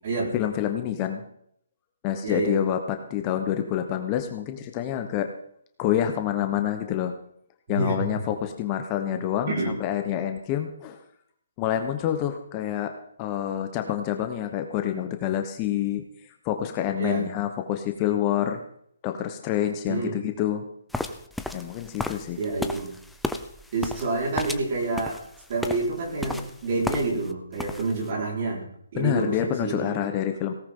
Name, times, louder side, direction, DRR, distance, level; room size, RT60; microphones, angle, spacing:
voice 1, 0.3-1.2 2.0-5.3 5.8-7.1 7.7-11.0 11.6-12.9 13.2-16.0 16.4-18.6 19.0-20.6 21.5-22.4 28.9-30.5, left 10 dB, 20° left, 6 dB, 1.0 m, -27 dB
voice 2, 2.2-2.6 7.7-8.1 9.5-9.8 17.0-17.3 19.9-20.1 22.4-23.0 23.7-25.2 25.5-28.7 28.9-30.0, right 3 dB, 40° right, -1 dB, 4.8 m, -28 dB
sound 1, 20.9-27.3 27.6-28.1, left 2 dB, ahead, 0.6 m, -34 dB
17.5 x 14.0 x 3.8 m, 0.68 s
hypercardioid pair, 160°, 0 cm